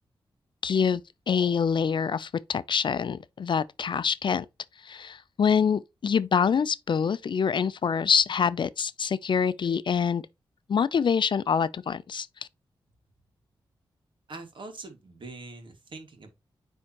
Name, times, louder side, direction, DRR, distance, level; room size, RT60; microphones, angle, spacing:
voice 1, 0.6-1.0 1.3-4.4 4.8-10.2 10.7-12.3, left 6 dB, 60° left, 0.4 m, -25 dB
voice 2, 14.3-16.3, right 3 dB, 60° right, 2.1 m, -43 dB
9.6 x 3.6 x 3.0 m
cardioid pair, 65°, 9 cm